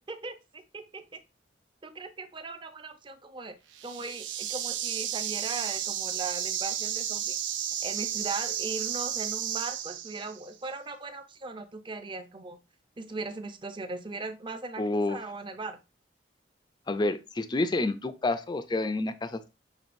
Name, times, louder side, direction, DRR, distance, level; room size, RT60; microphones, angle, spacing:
voice 1, 0.1-1.2 1.8-3.6 3.8-7.4 7.8-12.6 13.0-15.8, right 3 dB, 25° right, 9 dB, 0.5 m, -39 dB
sound 1, 3.7-10.4, right 10 dB, 80° right, 0.5 m, -33 dB
voice 2, 14.8-15.2 16.9-19.5, left 2 dB, 25° left, 11 dB, 0.4 m, -29 dB
6.3 x 3.3 x 2.5 m, 0.28 s
head